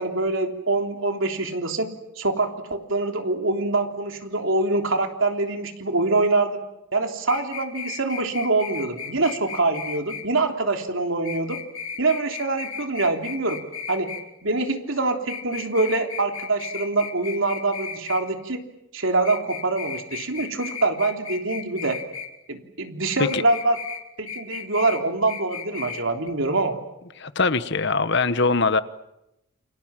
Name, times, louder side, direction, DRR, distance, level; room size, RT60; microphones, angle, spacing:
voice 1, 0.0-1.9 2.2-6.6 6.9-11.6 12.0-13.6 13.9-14.1 14.4-18.6 18.9-22.0 22.5-23.8 24.2-26.8, right 2 dB, 70° right, 4 dB, 3.4 m, -24 dB
sound 1, 7.3-10.2 11.3-14.2 15.3-18.2 19.2-22.3 23.3-24.0 24.3-25.0 25.3-26.0 26.3-26.4, left 7 dB, 85° left, 3.3 m, -35 dB
voice 2, 27.2-28.8, left 4 dB, 55° left, 13 dB, 1.2 m, -22 dB
29.5 x 25.0 x 7.5 m, 0.88 s
head